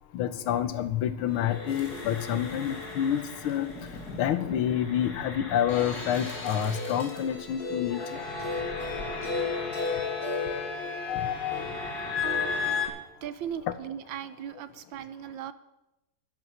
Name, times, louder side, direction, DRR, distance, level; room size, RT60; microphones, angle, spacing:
voice 1, 0.1-3.7 4.1-8.2 11.1-11.9, left 10 dB, 85° left, 12 dB, 1.7 m, -28 dB
sound 1, 1.3-12.9, left 4 dB, 50° left, 2.5 m, -34 dB
sound 2, 1.6-4.6 5.5-5.6 5.9-7.2, left 1 dB, 20° left, 3.5 m, -55 dB
voice 2, 12.2-15.5, right 9 dB, 75° right, 14 dB, 1.3 m, -38 dB
11.0 x 10.5 x 6.6 m, 0.93 s
omnidirectional pair, 2.3 m